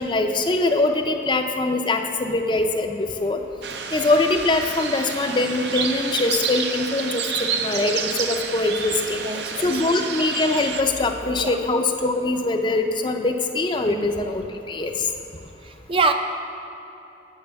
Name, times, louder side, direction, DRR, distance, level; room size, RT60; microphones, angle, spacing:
voice 1, 0.0-3.4 3.9-9.2 9.6-14.9, left 2 dB, 25° left, 5 dB, 0.5 m, -23 dB
sound 1, 3.6-10.8, right 6 dB, 75° right, 0.6 m, -29 dB
voice 2, 9.2-9.7 11.4-11.5 13.8-14.0 15.9-16.1, right 3 dB, 30° right, 6 dB, 0.4 m, -24 dB
8.8 x 5.9 x 6.9 m, 2.9 s
head